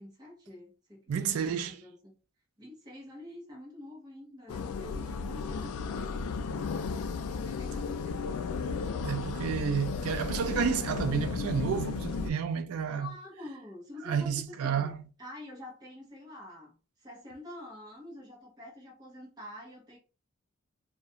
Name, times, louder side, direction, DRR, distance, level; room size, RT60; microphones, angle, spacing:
voice 1, 0.0-2.1 2.6-6.7 7.4-8.5 13.0-20.0, left 1 dB, 20° right, 0.7 m, -47 dB
voice 2, 1.1-1.8 9.0-13.1 14.0-15.1, right 7 dB, 80° right, 0.4 m, -30 dB
sound 1, 4.5-12.3, left 5 dB, 85° left, 0.3 m, -34 dB
2.3 x 2.1 x 2.7 m
head